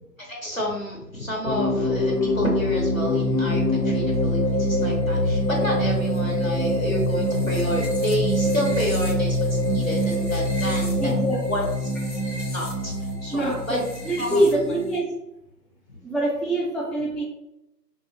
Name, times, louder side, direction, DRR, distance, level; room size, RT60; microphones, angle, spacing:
voice 1, 0.2-11.2 11.5-11.9 12.3-13.8 14.2-14.4 15.9-16.0, left 1 dB, 55° left, -2 dB, 0.5 m, -30 dB
sound 1, 1.4-15.0, equal, 90° left, 0.8 m, -24 dB
voice 2, 11.0-11.4 13.3-13.8 14.0-15.2 16.0-17.2, right 1 dB, ahead, -5 dB, 0.4 m, -24 dB
2.6 x 2.0 x 2.8 m, 0.87 s
figure-of-eight pair, 170°, 49 cm